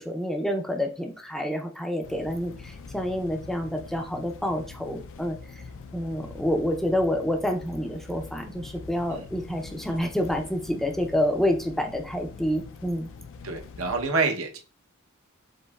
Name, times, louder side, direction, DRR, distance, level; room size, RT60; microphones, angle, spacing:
voice 1, 0.0-5.6 5.9-13.1, equal, ahead, 3 dB, 0.5 m, -28 dB
sound 1, 2.0-14.1, left 4 dB, 65° left, 0.4 m, -44 dB
voice 2, 13.4-14.6, right 3 dB, 70° right, 4 dB, 0.8 m, -27 dB
5.2 x 3.8 x 2.3 m, 0.36 s
head